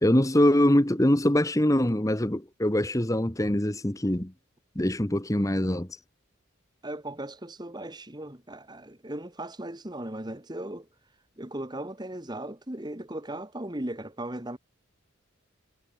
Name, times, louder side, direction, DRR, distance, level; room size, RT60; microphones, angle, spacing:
voice 1, 0.0-4.3 4.7-5.9, left 1 dB, 15° left, 1.3 m, -23 dB
voice 2, 6.8-10.9 11.4-14.6, right 1 dB, 20° right, 1.8 m, -37 dB
head